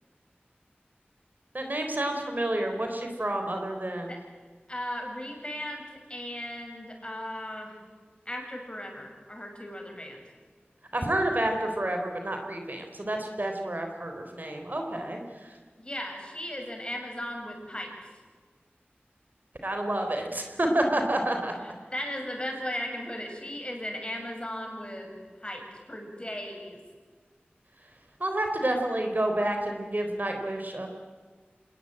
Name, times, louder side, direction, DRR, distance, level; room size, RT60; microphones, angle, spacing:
voice 1, 1.5-4.2 10.9-15.5 19.6-21.5 28.2-30.9, right 1 dB, 50° right, 4 dB, 3.7 m, -29 dB
voice 2, 4.7-7.8 8.2-10.2 15.8-17.9 21.6-26.8, left 1 dB, 25° left, 2 dB, 6.7 m, -37 dB
27.0 x 19.5 x 8.9 m, 1.5 s
wide cardioid pair, 50°, 4 cm